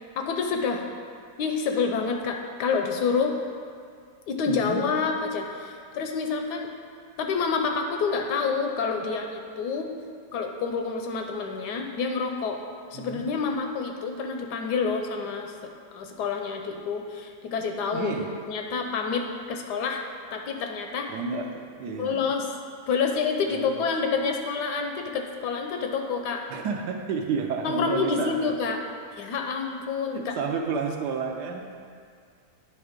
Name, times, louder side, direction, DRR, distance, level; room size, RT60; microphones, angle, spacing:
voice 1, 0.2-0.8 1.4-3.3 4.3-6.7 7.2-9.9 10.3-12.6 12.9-18.1 18.5-20.0 20.3-21.1 22.0-22.5 22.9-26.4 27.6-28.8 29.2-30.3, left 5 dB, 75° left, 3 dB, 1.1 m, -28 dB
voice 2, 4.5-4.8 12.9-13.3 17.9-18.3 21.1-22.3 23.5-23.9 26.5-28.5 30.1-31.6, right 5 dB, 70° right, 2 dB, 1.2 m, -31 dB
9.7 x 3.4 x 5.0 m, 2.2 s
omnidirectional pair, 2.0 m